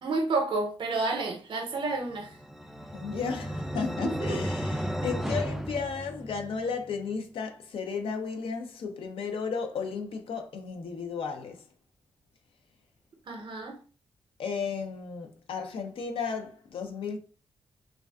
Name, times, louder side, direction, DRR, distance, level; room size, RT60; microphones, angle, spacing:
voice 1, 0.0-2.3 4.0-4.4 13.3-13.8, right 3 dB, 60° right, 0.7 m, -30 dB
sound 1, 2.1-6.7, equal, 5° right, 0.3 m, -34 dB
voice 2, 2.9-11.6 14.4-17.2, left 5 dB, 70° left, 0.5 m, -34 dB
2.3 x 2.3 x 2.3 m
supercardioid pair, 45°, 10 cm